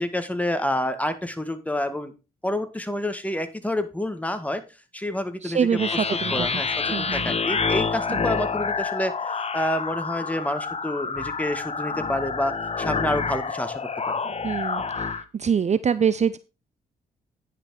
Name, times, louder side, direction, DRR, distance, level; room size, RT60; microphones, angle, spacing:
voice 1, 0.0-2.1 2.4-4.6 4.9-5.6 6.3-14.2, left 1 dB, 10° left, 9 dB, 1.8 m, -28 dB
voice 2, 5.4-6.6 6.9-7.4 8.1-8.2 14.2-16.4, right 7 dB, 40° right, 15 dB, 0.6 m, -25 dB
sound 1, 5.7-15.2, left 5 dB, 35° left, 1.1 m, -28 dB
9.9 x 5.9 x 4.7 m, 0.29 s
hypercardioid pair, 50°, 19 cm